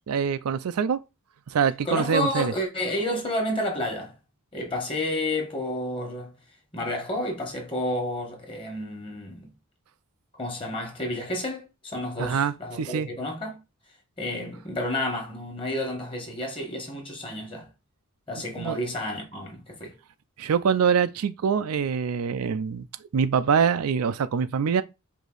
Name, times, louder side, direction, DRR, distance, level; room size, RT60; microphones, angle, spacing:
voice 1, 0.1-1.0 1.5-2.5 12.2-13.1 18.6-18.8 20.4-22.9 23.1-24.8, right 6 dB, 75° right, 0.4 m, -24 dB
voice 2, 1.8-4.1 4.5-6.3 6.7-9.5 10.4-13.6 14.2-17.7 18.3-20.0, left 1 dB, 25° left, 1.4 m, -30 dB
5.0 x 2.7 x 3.9 m
head